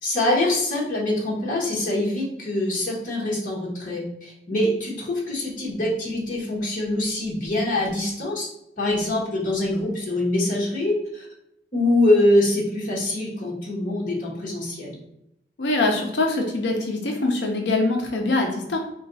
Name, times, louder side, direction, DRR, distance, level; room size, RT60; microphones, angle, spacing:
voice 1, 0.0-8.5 8.8-11.3 11.7-15.0, left 1 dB, 45° left, -5 dB, 1.2 m, -24 dB
voice 2, 15.6-18.8, left 2 dB, 70° left, 2 dB, 0.6 m, -23 dB
4.4 x 2.3 x 3.9 m, 0.82 s
head